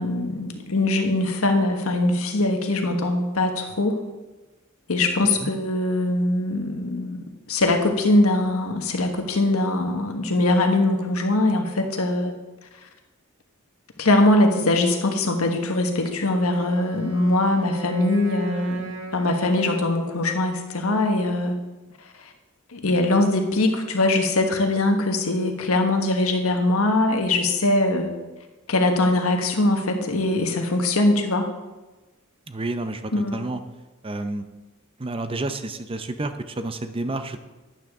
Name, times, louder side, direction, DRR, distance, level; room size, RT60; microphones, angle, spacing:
voice 1, 0.0-4.0 4.9-12.3 14.0-21.6 22.7-28.1 28.7-31.5 33.1-33.4, left 2 dB, 90° left, 4 dB, 1.4 m, -22 dB
Wind instrument woodwind instrument, 16.3-20.3, right 4 dB, 90° right, 1.6 m, -39 dB
voice 2, 32.5-33.6 34.0-34.4 35.0-37.4, right 2 dB, 25° right, 10 dB, 0.6 m, -30 dB
12.0 x 9.3 x 3.6 m, 1.1 s
head